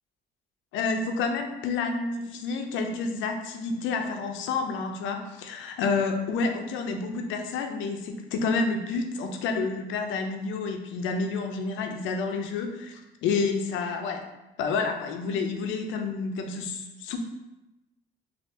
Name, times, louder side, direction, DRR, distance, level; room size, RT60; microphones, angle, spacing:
voice 1, 0.7-14.2 14.6-17.2, left 4 dB, 75° left, 4 dB, 0.5 m, -29 dB
3.4 x 2.4 x 2.7 m, 0.99 s
cardioid pair, 95°, 20 cm